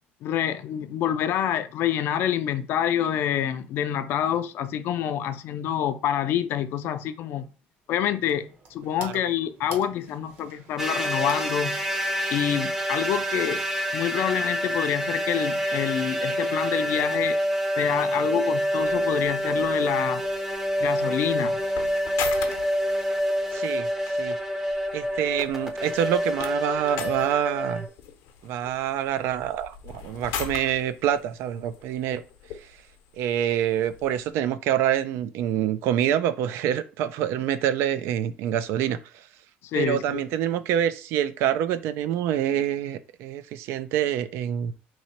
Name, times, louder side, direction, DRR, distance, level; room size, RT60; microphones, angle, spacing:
voice 1, 0.2-7.5 7.9-11.7 12.3-13.6 13.9-17.4 17.8-20.2 20.8-21.6 39.7-40.2, left 10 dB, 60° left, 0.4 m, -27 dB
sound 1, 7.8-13.2, right 3 dB, 50° right, 1.1 m, -49 dB
sound 2, 10.8-27.9, equal, 10° right, 0.6 m, -27 dB
sound 3, 18.8-34.3, left 7 dB, 85° left, 0.8 m, -41 dB
voice 2, 23.5-24.4 24.9-27.9 28.4-32.2 33.2-39.3 39.7-44.7, right 10 dB, 70° right, 0.4 m, -26 dB
3.1 x 2.8 x 4.3 m
cardioid pair, 125°, 4 cm